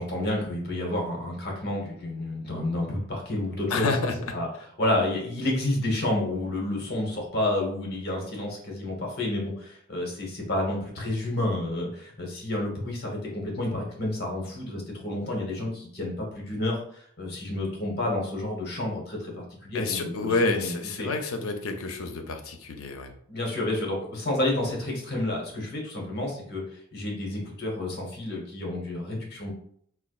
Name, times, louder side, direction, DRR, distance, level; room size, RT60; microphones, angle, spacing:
voice 1, 0.0-3.9 4.3-4.5 4.8-21.1 23.3-29.5, left 1 dB, 50° left, -1 dB, 1.0 m, -30 dB
voice 2, 3.7-4.1 19.7-23.1, left 3 dB, 90° left, 5 dB, 0.5 m, -28 dB
4.2 x 2.3 x 2.3 m, 0.63 s
head